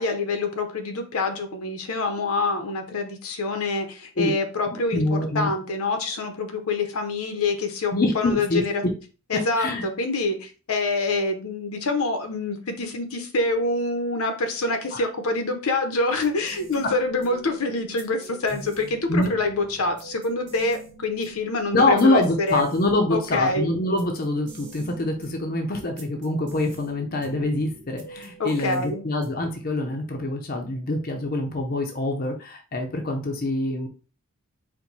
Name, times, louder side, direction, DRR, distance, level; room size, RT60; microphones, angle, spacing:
voice 1, 0.0-8.8 9.3-22.6 23.1-23.7 28.4-29.0, left 3 dB, 75° left, 6 dB, 0.8 m, -26 dB
voice 2, 4.9-5.5 7.9-8.6 9.6-9.8 14.9-15.1 19.1-19.3 21.7-33.9, left 2 dB, 40° left, 3 dB, 0.6 m, -25 dB
sound 1, 16.1-29.6, right 1 dB, 50° right, 1.2 m, -45 dB
4.4 x 2.2 x 4.0 m, 0.36 s
head